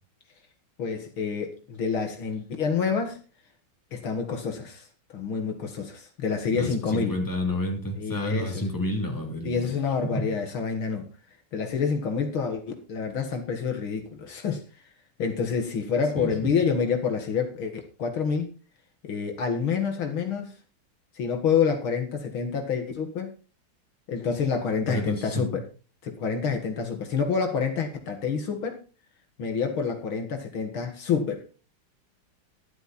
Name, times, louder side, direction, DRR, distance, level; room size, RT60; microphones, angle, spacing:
voice 1, 0.8-3.2 3.9-4.9 5.1-7.2 8.0-8.7 9.4-11.1 11.5-12.6 12.9-14.6 15.2-18.5 19.0-20.5 21.2-23.3 24.1-25.6 26.0-28.8 29.4-31.4, left 6 dB, 70° left, 2.6 m, -28 dB
voice 2, 6.5-9.7 10.0-10.3 16.2-16.5 24.9-25.6, left 1 dB, 10° left, 3.2 m, -30 dB
12.0 x 11.5 x 4.3 m
omnidirectional pair, 2.4 m